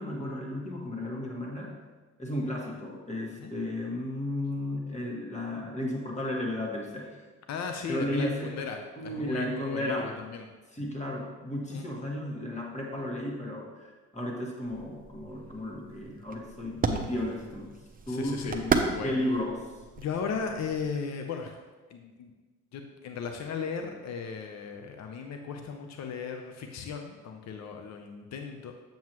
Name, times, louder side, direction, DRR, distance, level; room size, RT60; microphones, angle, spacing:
voice 1, 0.0-1.8 2.2-7.2 7.9-8.6 9.0-10.1 10.7-17.7 18.1-18.7 19.0-19.6, left 1 dB, 25° left, -1 dB, 1.8 m, -33 dB
voice 2, 7.5-10.5 11.7-11.8 18.1-19.1 20.0-21.6 21.9-22.3 22.7-28.7, left 6 dB, 65° left, 4 dB, 0.7 m, -36 dB
sound 1, 14.7-21.0, right 4 dB, 30° right, 0.7 m, -34 dB
7.5 x 7.2 x 3.0 m, 1.3 s
cardioid pair, 90°, 30 cm